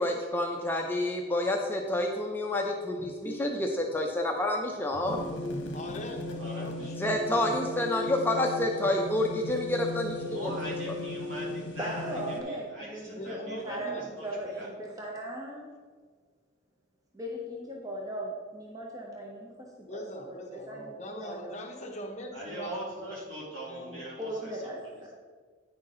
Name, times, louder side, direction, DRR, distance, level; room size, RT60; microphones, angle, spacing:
voice 1, 0.0-5.2 7.0-10.5, left 1 dB, 10° left, 1 dB, 0.5 m, -29 dB
sound 1, 5.1-12.4, left 2 dB, 60° left, 1.1 m, -36 dB
voice 2, 5.7-7.1 13.1-14.1 19.9-23.2 23.6-24.0, equal, 35° left, 2 dB, 0.9 m, -42 dB
voice 3, 6.4-6.9 10.2-14.7 22.3-24.7, right 1 dB, 65° right, -5 dB, 2.6 m, -41 dB
voice 4, 11.8-15.7 17.1-21.6 24.2-25.1, right 1 dB, 15° right, -2 dB, 0.8 m, -38 dB
9.5 x 5.8 x 3.8 m, 1.6 s
head